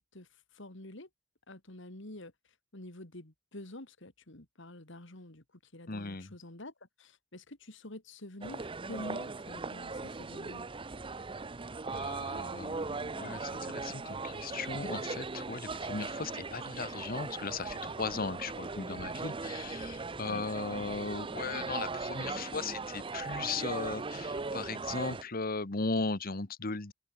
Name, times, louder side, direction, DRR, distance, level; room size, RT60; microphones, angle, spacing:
voice 1, 0.5-1.1 1.5-2.3 2.7-5.4 5.7-6.7 7.0-10.7 20.2-20.4, left 1 dB, 65° left, 3.0 m, -47 dB
voice 2, 5.9-6.4 11.9-26.9, left 4 dB, 45° left, 1.3 m, -37 dB
sound 1, 8.4-25.2, right 3 dB, 25° right, 0.7 m, -39 dB
open air
head